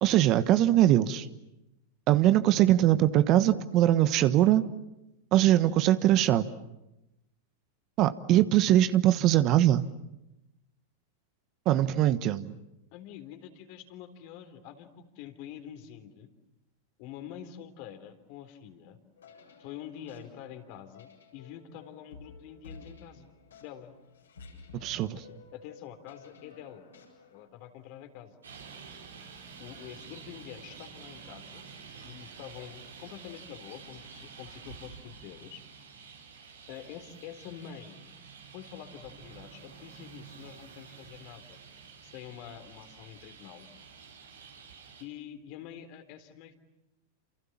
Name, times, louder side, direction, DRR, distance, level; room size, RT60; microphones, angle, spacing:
voice 1, 0.0-1.3 2.1-4.6 5.3-6.5 8.0-9.8 11.6-12.5 24.8-25.2, right 13 dB, 45° right, 13 dB, 1.3 m, -22 dB
voice 2, 12.9-16.3 17.0-19.0 19.6-23.3 23.6-23.9 25.1-25.2 25.5-26.9 27.3-28.4 29.6-31.7 32.0-35.6 36.7-38.0 38.5-41.6 42.0-43.7 45.0-46.5, left 10 dB, 50° left, 8 dB, 3.6 m, -46 dB
sound 1, 19.2-27.5, left 4 dB, 80° left, 7.7 m, -53 dB
Traffic noise roadway noise, 28.4-45.0, right 6 dB, 80° right, 5.2 m, -49 dB
28.5 x 28.5 x 7.4 m, 0.92 s
hypercardioid pair, 95°, 0 cm